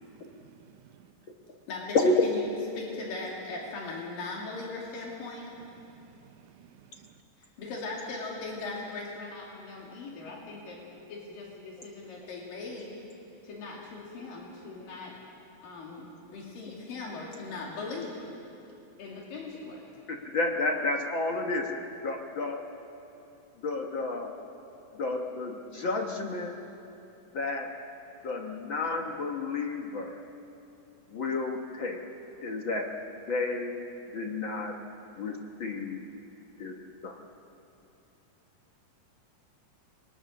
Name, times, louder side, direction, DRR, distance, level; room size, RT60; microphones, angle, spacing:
voice 1, 0.4-1.1 5.9-6.1 6.4-7.1, right 9 dB, 70° right, 2.2 m, -56 dB
voice 2, 2.8-5.5 7.6-12.9 13.4-15.1 15.6-18.2 19.0-19.8, left 3 dB, 85° left, 4.3 m, -39 dB
voice 3, 20.1-21.8 22.0-22.7 23.6-24.3 24.9-26.6 27.3-27.7 28.2-30.2 31.1-32.0 32.4-32.9 33.3-33.8 34.1-34.7 35.2-36.0 36.6-36.7 37.0-37.2, left 3 dB, 60° left, 1.3 m, -31 dB
28.0 x 22.0 x 6.5 m
omnidirectional pair, 3.9 m